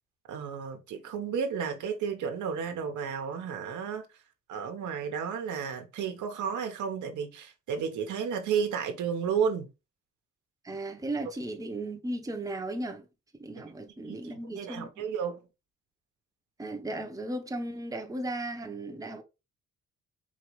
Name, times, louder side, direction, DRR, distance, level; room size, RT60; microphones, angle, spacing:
voice 1, 0.3-4.1 4.5-9.7 14.0-15.5, right 6 dB, 80° right, 1.0 m, -32 dB
voice 2, 10.6-13.1 13.4-14.9 16.6-19.2, right 1 dB, 10° right, 0.8 m, -36 dB
4.6 x 2.9 x 3.0 m
cardioid pair, 90°, 30 cm